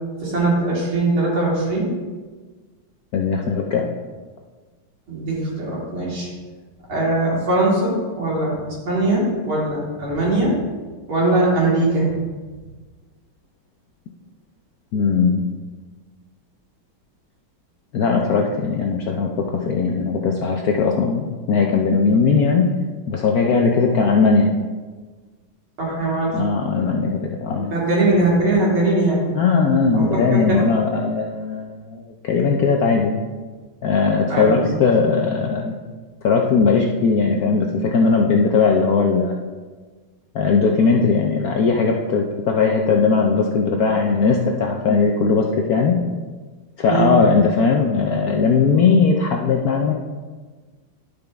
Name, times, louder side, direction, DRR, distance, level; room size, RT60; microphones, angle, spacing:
voice 1, 0.2-1.9 5.1-6.3 6.9-10.6 11.1-12.1 25.8-26.4 27.6-29.2 29.9-30.6 34.3-34.8 46.9-47.1, right 2 dB, 85° right, -6 dB, 3.3 m, -21 dB
voice 2, 3.1-3.9 14.9-15.4 17.9-22.7 23.1-24.5 26.3-27.7 29.3-33.2 33.8-35.7 36.2-39.3 40.3-46.0 46.8-49.9, left 4 dB, 70° left, 1 dB, 0.9 m, -19 dB
11.5 x 5.2 x 3.4 m, 1.4 s
omnidirectional pair, 2.2 m